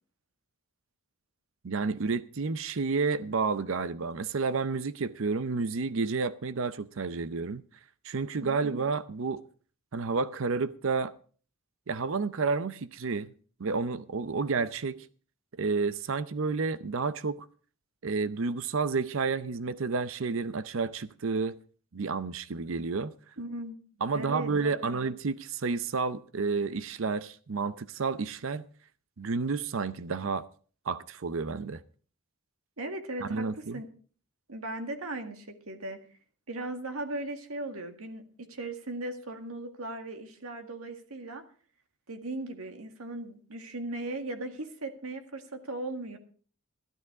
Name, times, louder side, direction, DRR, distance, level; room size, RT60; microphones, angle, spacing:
voice 1, 1.6-7.6 8.0-9.4 9.9-11.1 11.9-13.3 13.6-15.1 15.6-17.5 18.0-21.6 21.9-23.1 24.0-28.6 29.2-30.5 30.9-31.8 33.2-33.8, right 4 dB, 65° right, 0.6 m, -30 dB
voice 2, 8.4-8.8 23.4-23.7 24.1-25.0 32.8-33.8 34.5-36.0 36.5-41.4 42.1-46.2, right 2 dB, 85° right, 1.8 m, -38 dB
13.0 x 12.0 x 4.8 m
head